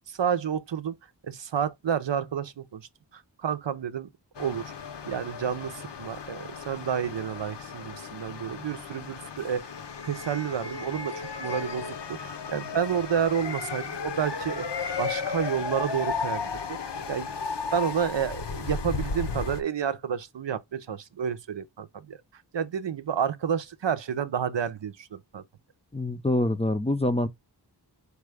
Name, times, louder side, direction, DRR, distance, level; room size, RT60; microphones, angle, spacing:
voice 1, 0.1-1.0 1.3-4.1 4.4-4.7 5.0-9.7 10.0-14.7 15.0-16.8 17.1-17.3 17.7-25.4, right 8 dB, 80° right, 0.6 m, -30 dB
sound 1, 4.3-19.6, left 5 dB, 70° left, 0.7 m, -35 dB
voice 2, 25.9-27.3, left 1 dB, 15° left, 0.4 m, -25 dB
4.8 x 2.3 x 4.8 m
wide cardioid pair, 50°, 42 cm